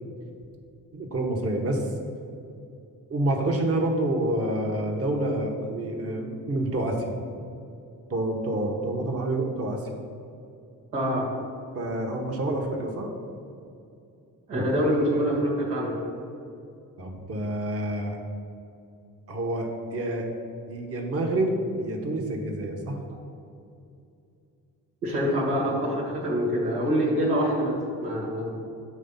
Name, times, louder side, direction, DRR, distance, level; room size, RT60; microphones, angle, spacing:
voice 1, 0.9-1.8 3.1-7.1 8.1-9.8 11.7-13.1 17.0-18.2 19.3-20.3 20.7-23.0, right 1 dB, 30° right, 1 dB, 1.0 m, -28 dB
voice 2, 10.9-11.2 14.5-15.9 25.0-28.5, equal, 80° right, -4 dB, 1.4 m, -25 dB
8.4 x 3.4 x 5.4 m, 2.6 s
figure-of-eight pair, 40°, 46 cm